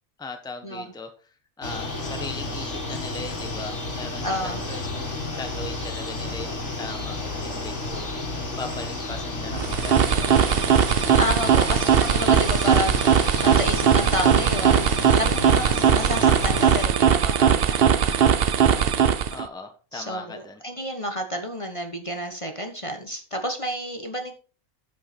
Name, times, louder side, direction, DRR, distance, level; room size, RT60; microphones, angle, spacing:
voice 1, 0.2-8.1 8.6-10.3 11.6-11.9 19.3-20.6, left 3 dB, 5° left, 6 dB, 1.1 m, -39 dB
sound 1, 1.6-16.9, left 2 dB, 60° left, 2.7 m, -31 dB
voice 2, 4.2-4.6 11.1-18.3 18.7-18.9 19.9-24.3, equal, 25° left, 5 dB, 1.2 m, -30 dB
sound 2, 9.5-19.5, right 8 dB, 55° right, 0.9 m, -19 dB
13.0 x 5.8 x 4.3 m, 0.37 s
omnidirectional pair, 1.3 m